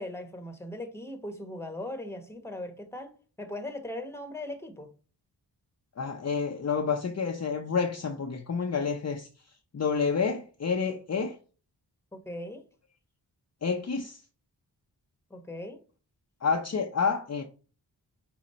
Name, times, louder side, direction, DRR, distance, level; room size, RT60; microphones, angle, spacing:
voice 1, 0.0-3.1 3.4-4.9 12.1-12.6 15.3-15.8, left 1 dB, 5° left, 1.1 m, -39 dB
voice 2, 6.0-9.3 9.7-11.4 13.6-14.2 16.4-17.4, left 5 dB, 40° left, 0.7 m, -29 dB
5.1 x 2.3 x 4.2 m
cardioid pair, 50°, 41 cm